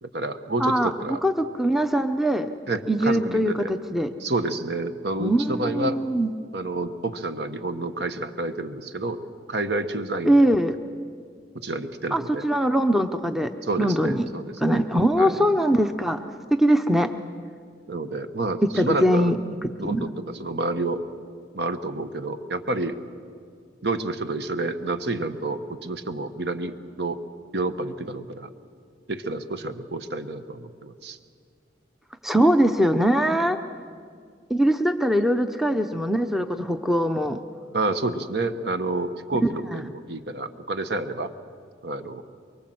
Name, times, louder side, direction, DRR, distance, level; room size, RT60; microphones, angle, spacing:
voice 1, 0.0-1.2 2.7-3.7 4.2-6.0 6.5-9.2 9.5-10.4 11.5-12.5 13.6-14.8 15.2-15.4 17.9-19.3 19.8-21.0 21.5-23.0 23.8-27.2 27.5-28.5 29.1-31.2 37.7-41.3 41.8-42.2, right 2 dB, 60° right, 9 dB, 1.2 m, -29 dB
voice 2, 0.6-0.9 1.2-2.5 2.9-4.1 5.2-6.3 10.2-10.7 12.1-13.5 13.8-14.3 14.6-16.3 16.6-17.1 18.7-19.4 19.8-20.1 32.2-33.6 34.5-37.4 39.7-39.8, equal, ahead, 7 dB, 0.6 m, -22 dB
23.5 x 23.5 x 7.8 m, 2.1 s
head